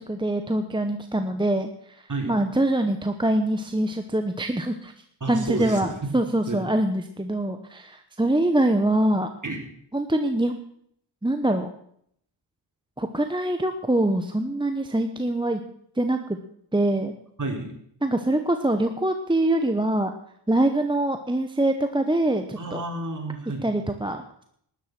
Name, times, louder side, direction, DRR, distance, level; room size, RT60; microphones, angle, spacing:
voice 1, 0.0-4.9 5.3-9.3 9.9-10.5 11.2-11.7 13.0-15.6 16.0-16.4 16.7-17.1 18.0-20.1 20.5-22.8 23.6-24.4, right 1 dB, 10° right, 6 dB, 1.1 m, -24 dB
voice 2, 5.2-5.9 6.5-6.6 9.4-9.6 17.4-17.7 22.6-23.6, right 2 dB, 40° right, 2 dB, 3.9 m, -30 dB
13.0 x 11.0 x 6.1 m, 0.69 s
cardioid pair, 50°, 49 cm